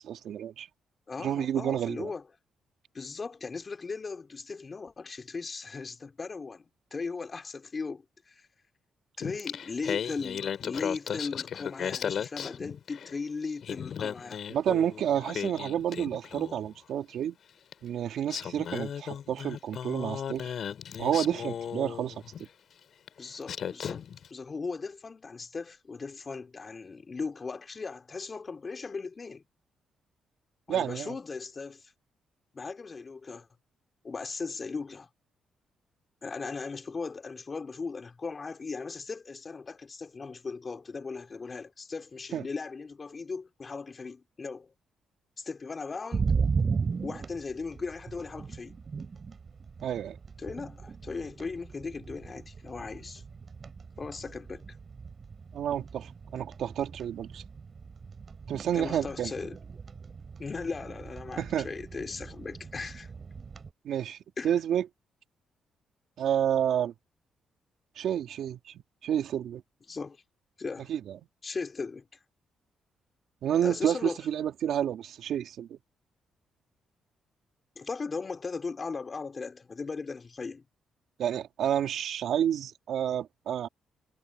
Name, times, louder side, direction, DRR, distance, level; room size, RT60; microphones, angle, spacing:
voice 1, 0.1-0.7 1.2-2.1 14.5-17.4 17.8-20.5 21.0-22.2 30.7-31.2 42.3-42.5 49.8-50.2 55.5-57.4 58.5-59.3 61.4-61.7 63.8-64.2 64.4-64.8 66.2-66.9 68.0-69.6 70.9-71.2 73.4-75.8 81.2-83.7, right 10 dB, 75° right, 3.3 m, -30 dB
voice 2, 1.1-2.2 2.9-8.5 9.2-14.4 23.2-24.0 24.3-29.4 30.7-31.9 32.5-33.5 34.0-35.1 36.2-44.7 45.4-46.3 47.0-48.7 50.4-53.2 54.0-54.6 58.7-59.6 60.4-63.1 64.4-64.6 69.9-70.2 70.6-70.9 71.4-72.1 73.6-74.2 77.8-80.6, left 4 dB, 35° left, 3.6 m, -38 dB
Singing, 9.2-13.2 13.5-16.7 17.7-17.8 18.3-22.5 23.1-23.2 23.5-24.3, left 8 dB, 60° left, 5.1 m, -36 dB
sound 1, 46.1-63.7, right 5 dB, 40° right, 4.7 m, -37 dB
cardioid pair, 90°, 0 cm